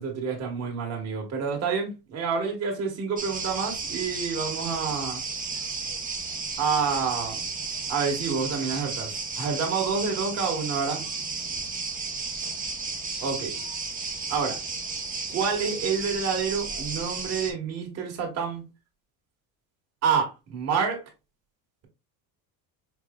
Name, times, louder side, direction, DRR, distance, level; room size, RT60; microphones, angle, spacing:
voice 1, 0.0-5.2 6.6-7.4 7.9-11.0 13.2-13.5 14.3-14.6 15.3-18.6 20.0-21.0, right 5 dB, 40° right, 1.3 m, -28 dB
sound 1, 3.2-17.5, right 4 dB, 20° right, 0.9 m, -33 dB
4.6 x 3.0 x 2.2 m
cardioid pair, 145°, 41 cm